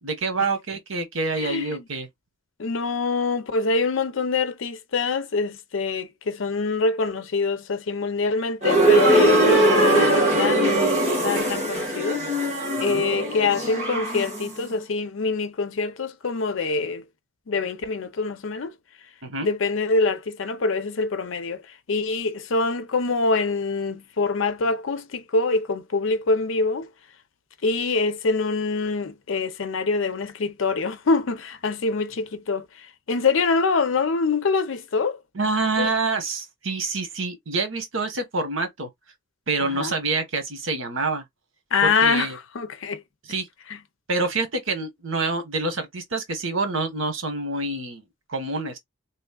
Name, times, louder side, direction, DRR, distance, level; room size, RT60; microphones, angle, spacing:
voice 1, 0.0-2.1 12.8-13.0 19.2-19.5 35.3-38.9 39.5-41.2 41.8-42.4 43.2-43.5 44.1-48.0 48.3-48.8, right 3 dB, 90° right, 1.2 m, -27 dB
voice 2, 1.4-1.8 2.6-10.9 11.2-12.2 12.8-17.0 17.5-18.7 19.4-21.6 21.9-26.9 27.6-32.6 33.1-35.2 35.8-35.9 39.6-39.9 41.7-42.3 42.5-43.0, left 4 dB, 85° left, 0.6 m, -25 dB
sound 1, 8.6-14.5, right 1 dB, 35° right, 1.6 m, -20 dB
3.5 x 3.1 x 2.3 m
head